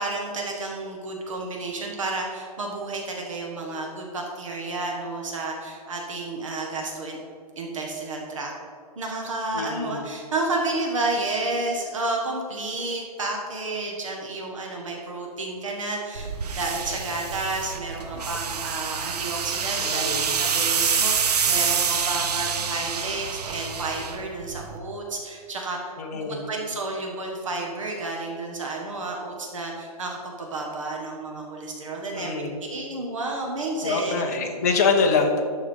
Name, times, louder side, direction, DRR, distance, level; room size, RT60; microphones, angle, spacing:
voice 1, 0.0-7.2 7.6-8.5 8.9-34.3, right 2 dB, 55° right, 0 dB, 1.6 m, -31 dB
voice 2, 9.5-10.0 19.8-20.4 26.0-26.5 32.1-32.6 33.8-35.4, left 4 dB, 25° left, 2 dB, 0.8 m, -25 dB
sound 1, 16.1-24.8, right 6 dB, 80° right, 0.9 m, -27 dB
12.0 x 4.9 x 5.5 m, 2.2 s
hypercardioid pair, 175°, 20 cm